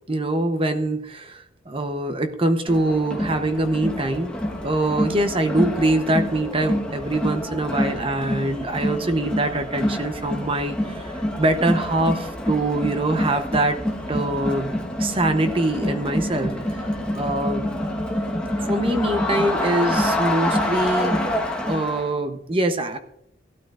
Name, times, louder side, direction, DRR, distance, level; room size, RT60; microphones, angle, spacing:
voice 1, 0.1-4.3 4.6-13.8 14.1-16.6 17.1-17.8 18.7-21.2 21.7-23.0, right 2 dB, 30° right, 7 dB, 0.8 m, -24 dB
Crowd, 2.7-22.1, left 1 dB, 5° left, 1.3 m, -26 dB
16.5 x 12.5 x 2.5 m, 0.75 s
head